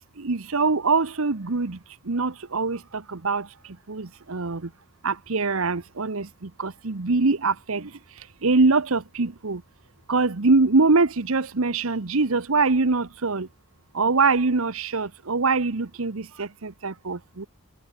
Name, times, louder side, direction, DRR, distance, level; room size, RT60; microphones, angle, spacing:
voice 1, 0.2-1.8 2.0-4.7 5.0-9.6 10.1-13.5 13.9-17.5, right 3 dB, 70° right, 1.0 m, -24 dB
head